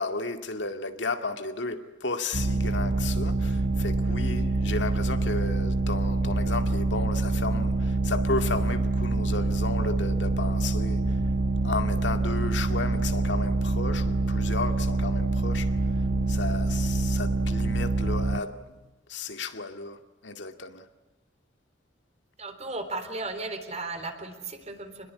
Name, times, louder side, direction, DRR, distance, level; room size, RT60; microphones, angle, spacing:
voice 1, 0.0-11.2 11.6-15.7 16.3-18.7 19.1-20.9, left 3 dB, 75° left, 2.2 m, -33 dB
sound 1, 2.3-18.4, right 2 dB, 60° right, 1.1 m, -26 dB
voice 2, 22.4-25.1, right 2 dB, 35° right, 3.8 m, -35 dB
28.0 x 21.5 x 9.7 m
head